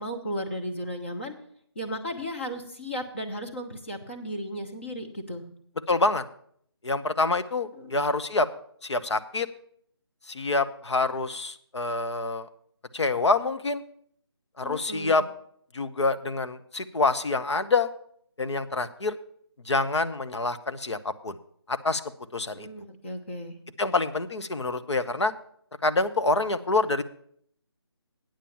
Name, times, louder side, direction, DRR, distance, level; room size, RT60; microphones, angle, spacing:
voice 1, 0.0-1.3 1.7-5.4 7.7-7.9 14.6-15.2 22.5-23.6, equal, 25° left, 3 dB, 1.0 m, -35 dB
voice 2, 5.9-6.3 6.8-8.5 8.8-9.5 10.3-12.5 12.9-13.8 14.6-15.2 15.7-17.9 18.4-19.2 19.6-21.4 21.7-22.0 22.3-22.7 23.8-25.3 25.8-27.0, left 3 dB, 85° left, 10 dB, 0.9 m, -26 dB
9.0 x 7.1 x 7.1 m, 0.64 s
figure-of-eight pair, 175°, 14 cm